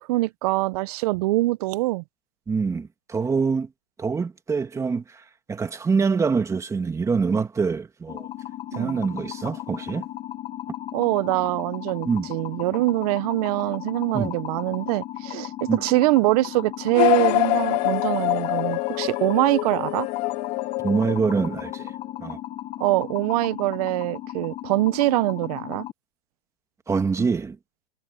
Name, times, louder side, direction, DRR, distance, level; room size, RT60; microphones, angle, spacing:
voice 1, 0.1-2.0 8.7-9.0 10.9-20.1 22.8-25.8, right 20 dB, 40° right, 0.7 m, -24 dB
voice 2, 2.5-3.7 4.0-8.3 8.7-10.1 12.1-12.3 14.1-14.3 15.7-15.8 20.8-21.9 22.2-22.4 26.9-27.6, right 5 dB, 10° right, 2.2 m, -25 dB
sound 1, 8.1-25.9, left 13 dB, 20° left, 1.0 m, -36 dB
sound 2, 16.9-21.8, left 22 dB, 45° left, 2.1 m, -25 dB
hypercardioid pair, 155°, 31 cm